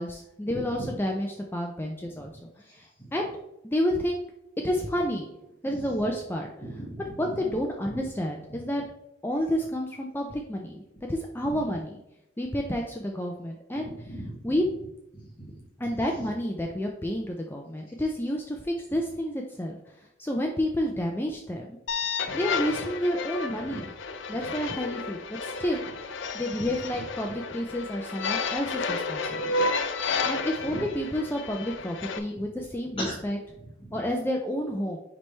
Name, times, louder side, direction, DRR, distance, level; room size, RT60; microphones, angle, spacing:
voice 1, 0.0-2.3 2.7-3.3 3.6-4.2 4.6-5.3 5.6-6.5 7.2-8.9 9.2-10.8 11.1-12.0 12.4-13.9 14.4-14.6 15.8-21.8 22.3-23.9 24.3-25.9 26.3-29.5 30.2-33.4 33.9-35.0, equal, 10° left, 1 dB, 0.4 m, -30 dB
voice 2, 0.5-0.9 2.1-2.3 2.6-3.2 5.7-6.0 6.6-7.4 7.9-8.0 8.5-8.8 11.4-11.8 13.8-14.6 15.1-16.3 22.3-22.4 22.7-22.8 23.6-23.8 24.2-24.4 30.6-30.9 32.9-33.2 33.8-34.0, right 1 dB, 25° left, -5 dB, 2.3 m, -40 dB
sound 1, 21.9-32.2, left 4 dB, 65° left, 0.5 m, -31 dB
9.5 x 3.2 x 3.2 m, 0.86 s
head